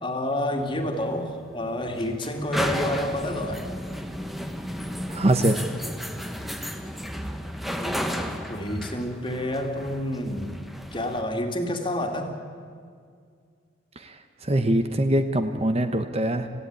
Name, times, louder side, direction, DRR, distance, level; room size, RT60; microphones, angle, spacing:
voice 1, 0.0-3.7 7.8-12.4, left 1 dB, 25° left, 3 dB, 2.4 m, -29 dB
sound 1, 0.6-11.2, equal, ahead, 1.2 m, -33 dB
voice 2, 5.1-5.6 14.0-14.2 14.4-16.5, right 1 dB, 30° right, 8 dB, 1.0 m, -23 dB
26.5 x 15.5 x 9.5 m, 2.2 s
head